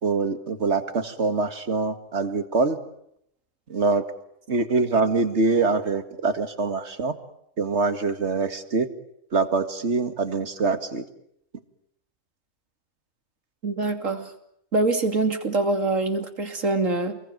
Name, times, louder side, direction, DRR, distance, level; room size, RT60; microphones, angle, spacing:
voice 1, 0.0-2.8 3.7-4.0 4.5-7.1 7.6-8.9 9.3-11.0, right 4 dB, 60° right, 9 dB, 2.2 m, -24 dB
voice 2, 13.6-14.3 14.7-17.2, right 3 dB, 85° right, 7 dB, 3.2 m, -24 dB
28.0 x 21.5 x 9.2 m, 0.74 s
omnidirectional pair, 1.3 m